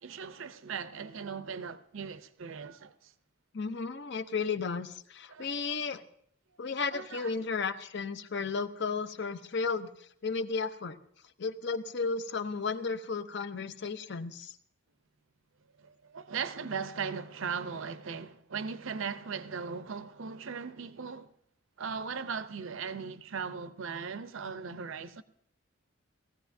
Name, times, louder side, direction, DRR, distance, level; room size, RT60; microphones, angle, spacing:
voice 1, 0.0-3.1 5.3-5.8 6.9-7.5 15.8-21.3 21.8-25.2, right 6 dB, 65° right, 0.6 m, -38 dB
voice 2, 3.5-6.0 6.6-11.0 11.4-14.5, left 4 dB, 55° left, 0.6 m, -34 dB
19.5 x 15.0 x 2.6 m
head